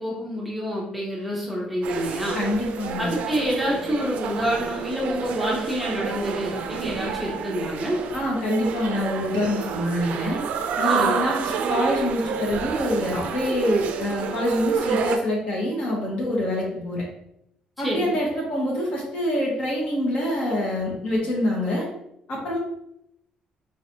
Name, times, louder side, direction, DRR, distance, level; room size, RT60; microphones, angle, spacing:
voice 1, 0.0-2.4 3.0-8.0 10.9-11.2 17.8-18.2, equal, ahead, -5 dB, 0.8 m, -27 dB
sound 1, 1.8-15.2, right 6 dB, 70° right, 0.3 m, -29 dB
voice 2, 2.3-3.1 8.1-10.4 10.8-17.0 17.8-21.9 22.3-22.6, left 1 dB, 50° left, -3 dB, 1.3 m, -25 dB
4.0 x 3.1 x 2.7 m, 0.79 s
cardioid pair, 150°, 3 cm